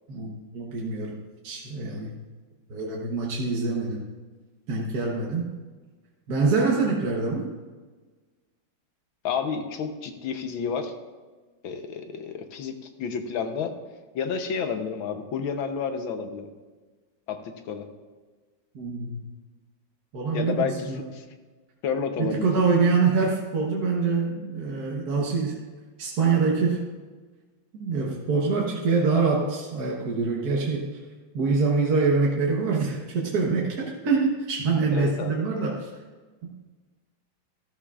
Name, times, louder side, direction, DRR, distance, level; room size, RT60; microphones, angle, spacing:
voice 1, 0.1-1.2 1.4-2.2 2.7-4.0 4.7-5.5 6.3-7.5 18.7-19.2 20.1-21.0 22.2-25.6 26.0-26.9 27.7-31.0 31.3-35.9 36.4-36.5, right 4 dB, 55° right, -2 dB, 1.5 m, -25 dB
voice 2, 9.2-10.9 11.6-13.7 14.1-16.5 17.3-17.9 20.3-21.2 21.8-22.5 34.9-35.4, left 6 dB, 85° left, 7 dB, 1.7 m, -30 dB
13.5 x 13.0 x 2.4 m, 1.4 s
omnidirectional pair, 2.1 m